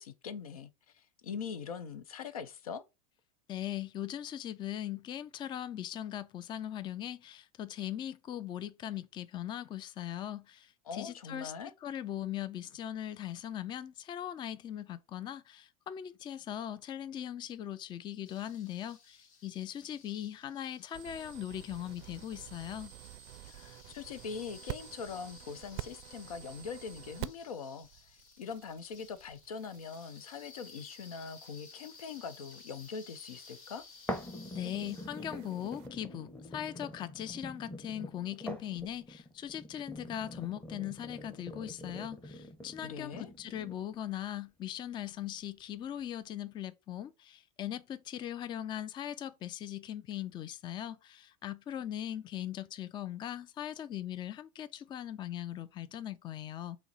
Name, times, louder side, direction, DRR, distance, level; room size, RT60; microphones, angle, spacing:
voice 1, 0.0-2.8 10.9-11.7 23.4-27.9 28.4-33.8 42.8-43.3, left 6 dB, 85° left, 0.6 m, -42 dB
voice 2, 3.5-11.5 11.8-22.9 34.5-56.8, left 11 dB, 25° left, 0.3 m, -40 dB
sound 1, 18.2-35.1, left 5 dB, 65° left, 1.2 m, -56 dB
sound 2, 20.9-27.6 27.8-35.9, right 19 dB, 55° right, 0.4 m, -49 dB
sound 3, 34.1-44.1 44.6-44.7, equal, 5° left, 0.8 m, -45 dB
5.6 x 2.1 x 4.0 m
hypercardioid pair, 95°, 18 cm